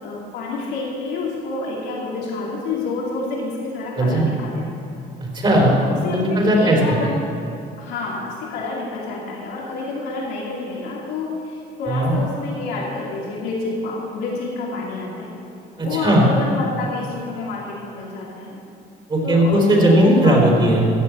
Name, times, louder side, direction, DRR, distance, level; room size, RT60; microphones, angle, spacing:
voice 1, 0.0-4.9 5.9-7.2 7.8-15.3 15.8-18.6 19.2-20.4, left 3 dB, 90° left, -4 dB, 3.0 m, -28 dB
voice 2, 4.0-4.3 5.2-5.8 6.1-7.0 11.9-12.2 15.8-16.3 19.1-20.9, right 1 dB, 30° right, 0 dB, 3.8 m, -17 dB
14.0 x 8.4 x 8.4 m, 2.5 s
cardioid pair, 110°, 17 cm